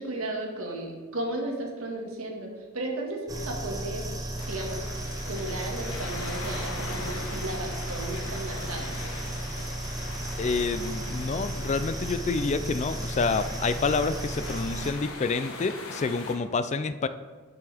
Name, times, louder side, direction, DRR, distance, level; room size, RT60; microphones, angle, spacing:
voice 1, 0.0-4.0 4.5-4.9 5.3-8.9, right 2 dB, 80° right, 1 dB, 1.8 m, -34 dB
sound 1, 3.3-14.9, right 1 dB, 15° right, 0.8 m, -34 dB
sound 2, 4.4-16.3, left 3 dB, 85° left, 1.4 m, -41 dB
voice 2, 10.4-17.1, left 4 dB, 35° left, 13 dB, 0.3 m, -28 dB
11.5 x 6.9 x 3.4 m, 1.5 s
head